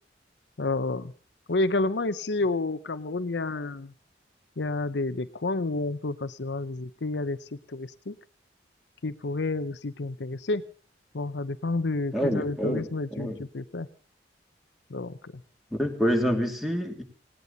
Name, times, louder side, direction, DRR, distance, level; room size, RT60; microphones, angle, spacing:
voice 1, 0.6-1.1 1.5-3.9 4.6-8.2 9.0-10.6 11.1-13.9 14.9-15.3, left 2 dB, 70° left, 12 dB, 0.8 m, -30 dB
voice 2, 12.1-13.4 15.8-17.0, equal, ahead, 3 dB, 2.7 m, -27 dB
19.5 x 18.0 x 4.1 m, 0.40 s
head